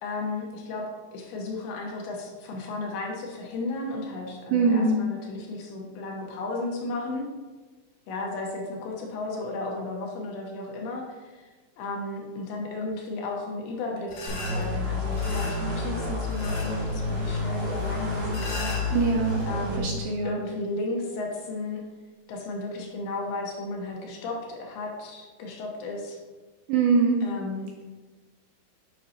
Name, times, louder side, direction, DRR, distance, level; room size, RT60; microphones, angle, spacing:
voice 1, 0.0-7.2 8.1-11.5 11.8-19.0 19.5-20.0 20.2-21.8 22.3-26.2 27.2-27.9, left 2 dB, 80° left, -1 dB, 2.8 m, -34 dB
voice 2, 4.5-5.0 18.9-19.5 19.8-20.4 26.7-27.2, right 4 dB, 80° right, 0 dB, 2.6 m, -23 dB
sound 1, 14.1-19.4, left 2 dB, 65° left, 2.1 m, -40 dB
sound 2, 14.3-19.8, left 2 dB, 55° right, 1.3 m, -29 dB
8.6 x 5.3 x 2.7 m, 1.3 s
omnidirectional pair, 5.5 m